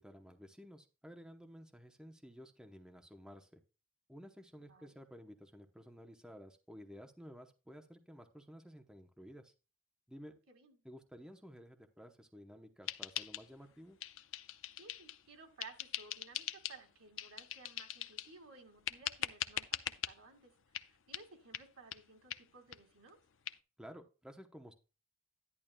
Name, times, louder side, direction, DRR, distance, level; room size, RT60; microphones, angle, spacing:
voice 1, 0.0-3.6 4.1-9.5 10.1-10.4 10.8-14.0 23.8-24.7, equal, 5° right, 4 dB, 0.7 m, -54 dB
voice 2, 4.5-5.0 10.3-10.8 14.8-20.5 20.9-23.2, right 4 dB, 90° right, 5 dB, 2.1 m, -57 dB
sound 1, 12.9-13.7 14.0-15.2 15.6-16.8 17.2-18.3 18.9-20.1 20.7-20.9 21.1-21.3 21.5-21.7 21.9-22.0 22.3-22.4 22.7-22.8 23.1-23.2 23.5-23.6, left 11 dB, 60° left, 0.6 m, -41 dB
11.0 x 10.5 x 2.2 m, 0.32 s
head